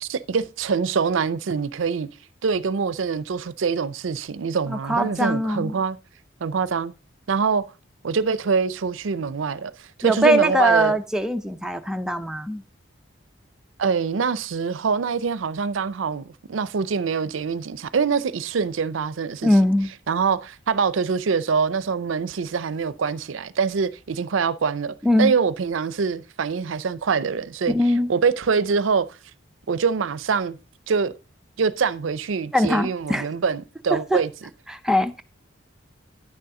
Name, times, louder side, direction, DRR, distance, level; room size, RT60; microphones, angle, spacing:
voice 1, 0.0-2.1 2.4-6.0 6.4-6.9 7.3-7.6 8.0-10.9 13.8-19.5 20.1-27.8 28.1-29.1 29.7-30.6 30.9-31.1 31.6-34.3, right 5 dB, 85° right, 0.5 m, -24 dB
voice 2, 4.7-5.7 10.0-12.6 19.4-19.9 25.0-25.3 27.7-28.1 32.5-33.3 33.9-34.2 34.7-35.2, equal, 5° right, 0.5 m, -21 dB
9.8 x 6.9 x 3.7 m
head